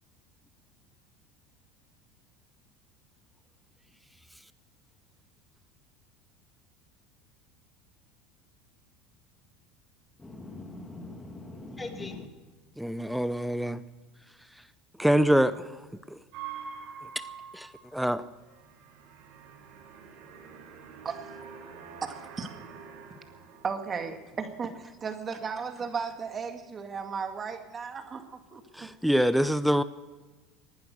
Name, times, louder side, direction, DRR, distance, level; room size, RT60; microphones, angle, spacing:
voice 1, 10.2-12.3, left 2 dB, 15° left, 5 dB, 2.5 m, -41 dB
voice 2, 12.8-13.8 15.0-15.6 17.5-18.2 28.8-29.8, equal, ahead, 14 dB, 0.7 m, -25 dB
sound 1, 16.3-24.2 24.5-25.0 25.3-26.0, right 6 dB, 65° right, 4.2 m, -46 dB
voice 3, 22.0-22.5 23.6-28.9, right 5 dB, 30° right, 6 dB, 2.0 m, -35 dB
19.5 x 11.5 x 6.4 m, 1.3 s
supercardioid pair, 115°, 0 cm